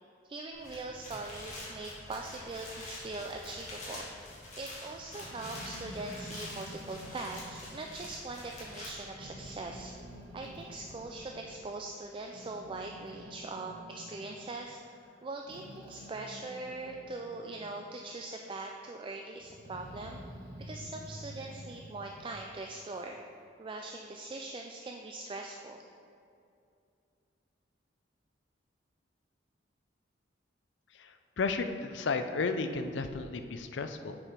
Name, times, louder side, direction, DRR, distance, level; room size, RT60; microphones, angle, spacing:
voice 1, 0.2-4.1 4.6-9.9 10.3-14.8 15.2-20.2 20.6-23.2 23.6-25.8, right 2 dB, 25° right, 2 dB, 0.3 m, -41 dB
sound 1, 0.5-8.9, left 2 dB, 35° left, 1.8 m, -46 dB
sound 2, 0.6-11.7, equal, 10° left, 0.8 m, -56 dB
Growling, 5.1-8.9 9.2-11.5 12.1-17.9 18.2-18.9 19.4-23.2, equal, 60° right, 1.2 m, -49 dB
voice 2, 30.9-34.2, left 4 dB, 70° left, 8 dB, 0.5 m, -33 dB
7.1 x 4.6 x 5.2 m, 2.6 s
head